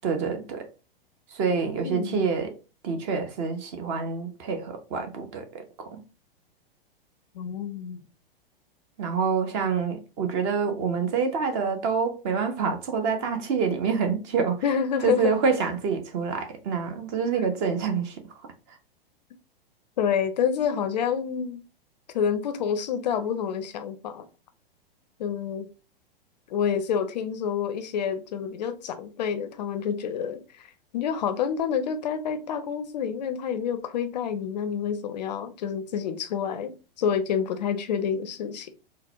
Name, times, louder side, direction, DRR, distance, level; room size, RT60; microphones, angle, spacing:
voice 1, 0.0-0.7 1.3-2.5 2.8-6.0 9.0-14.6 15.0-18.2, right 5 dB, 30° right, 0.6 m, -27 dB
voice 2, 1.8-2.3 7.3-8.0 14.6-15.3 20.0-21.6 22.1-24.3 25.2-25.7 26.5-38.7, left 7 dB, 45° left, 0.4 m, -28 dB
3.7 x 2.1 x 2.7 m
figure-of-eight pair, 100°, 29 cm